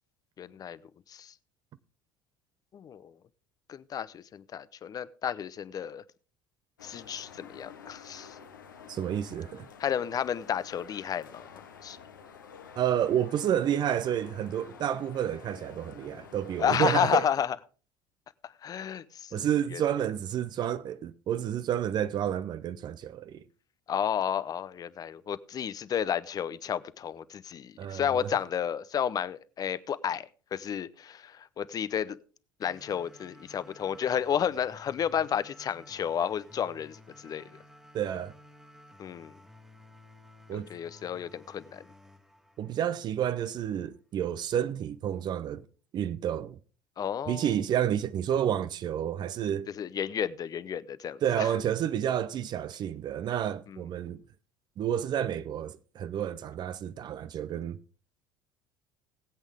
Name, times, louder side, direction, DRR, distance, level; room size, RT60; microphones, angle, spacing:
voice 1, 0.4-0.8 1.1-1.3 2.7-3.1 3.7-6.0 6.8-8.4 9.8-12.0 16.6-17.6 18.4-19.8 23.9-32.2 32.6-37.5 39.0-39.3 40.5-41.9 47.0-47.5 49.8-51.5 53.7-53.8, left 8 dB, 35° left, 0.7 m, -32 dB
sound 1, 6.8-17.5, left 6 dB, 85° left, 1.3 m, -50 dB
voice 2, 8.9-9.7 12.8-17.3 19.3-23.4 27.8-28.3 37.9-38.3 40.5-40.7 42.6-45.6 45.9-46.6 47.3-49.7 51.2-54.2 54.8-57.8, right 10 dB, 45° right, 0.6 m, -30 dB
sound 2, 32.6-43.6, left 1 dB, 5° right, 1.6 m, -55 dB
19.5 x 8.3 x 3.4 m
figure-of-eight pair, 65°, 10 cm